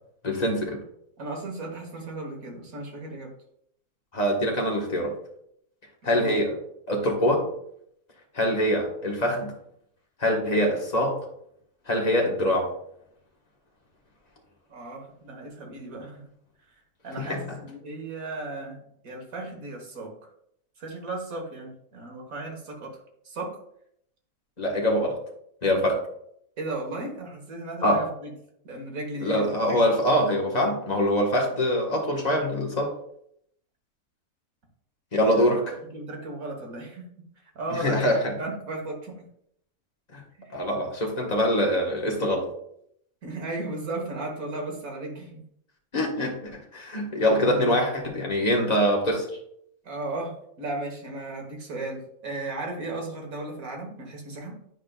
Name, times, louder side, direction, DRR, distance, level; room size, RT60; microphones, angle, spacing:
voice 1, 0.2-0.8 4.1-5.2 6.0-6.6 6.9-7.5 8.3-9.5 10.2-11.2 11.9-12.7 17.2-17.4 24.6-25.2 25.6-26.0 27.8-28.0 29.2-32.9 35.1-35.8 37.7-38.3 40.1-40.2 40.5-42.5 45.9-49.3, equal, 30° left, -1 dB, 1.4 m, -24 dB
voice 2, 1.2-3.3 6.0-6.4 14.7-16.2 17.0-20.1 20.8-23.0 23.2-23.6 26.6-28.3 28.6-30.7 35.3-35.5 35.9-37.0 37.6-38.0 38.4-39.2 40.4-40.5 43.2-45.4 47.3-47.8 49.8-54.6, right 2 dB, 70° right, 1 dB, 1.9 m, -35 dB
10.5 x 4.9 x 2.4 m, 0.71 s
omnidirectional pair, 1.5 m